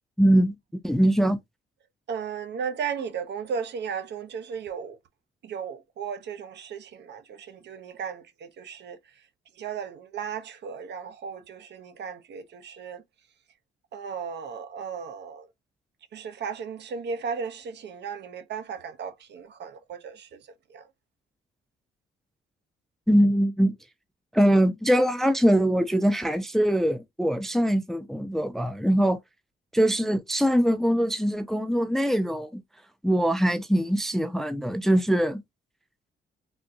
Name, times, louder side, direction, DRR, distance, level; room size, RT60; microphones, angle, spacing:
voice 1, 0.2-0.6 0.8-1.4 23.1-23.7 24.3-29.2 29.7-32.5 33.0-35.4, equal, ahead, 0.4 m, -22 dB
voice 2, 2.1-5.0 5.4-9.0 9.6-13.0 13.9-15.5 16.1-20.4 20.7-20.8, right 6 dB, 60° right, 0.7 m, -35 dB
3.5 x 2.6 x 2.6 m
cardioid pair, 90°, 20 cm